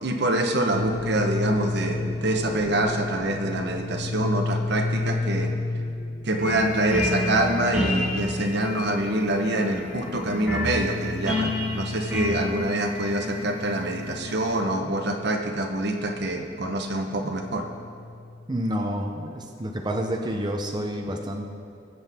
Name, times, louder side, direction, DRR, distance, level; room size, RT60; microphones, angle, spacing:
voice 1, 0.0-5.5 6.2-17.6, right 1 dB, 65° right, 3 dB, 1.1 m, -25 dB
sound 1, 0.7-19.0, left 3 dB, 55° left, 0.6 m, -33 dB
sound 2, 6.4-14.6, left 2 dB, 5° right, 1.8 m, -31 dB
voice 2, 18.5-21.5, equal, 25° right, 1 dB, 0.7 m, -29 dB
20.0 x 7.8 x 3.6 m, 2.5 s
head